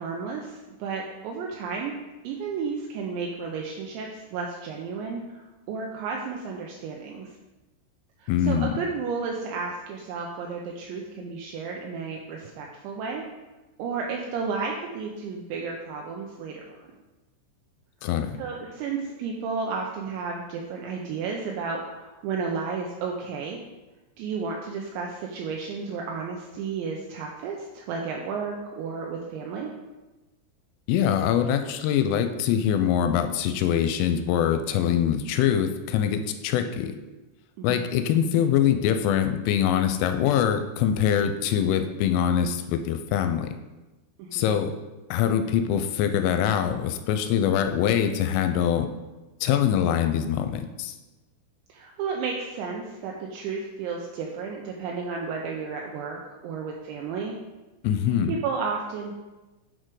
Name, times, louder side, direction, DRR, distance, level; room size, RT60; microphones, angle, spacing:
voice 1, 0.0-1.9 2.2-7.3 8.2-13.3 13.8-16.9 18.4-23.6 24.2-29.7 37.6-37.8 44.2-44.5 51.7-57.3 58.3-59.1, right 5 dB, 85° right, 0 dB, 2.6 m, -32 dB
voice 2, 8.3-8.7 18.0-18.4 30.9-36.9 37.6-43.5 44.3-44.7 45.1-48.9 49.4-51.0 57.8-58.3, left 9 dB, 85° left, 8 dB, 3.0 m, -23 dB
7.5 x 4.4 x 4.7 m, 1.1 s
omnidirectional pair, 5.7 m